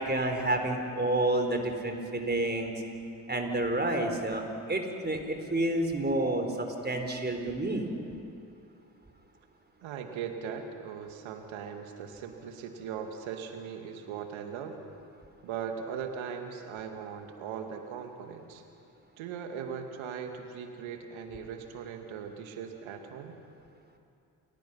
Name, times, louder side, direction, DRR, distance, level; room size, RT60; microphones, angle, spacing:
voice 1, 0.0-2.7 3.3-7.9, right 1 dB, 20° right, 4 dB, 4.4 m, -29 dB
voice 2, 9.8-14.8 15.4-18.6 19.2-23.4, right 7 dB, 65° right, 5 dB, 2.4 m, -39 dB
29.5 x 21.5 x 5.7 m, 2.5 s
hypercardioid pair, 45°, 50 cm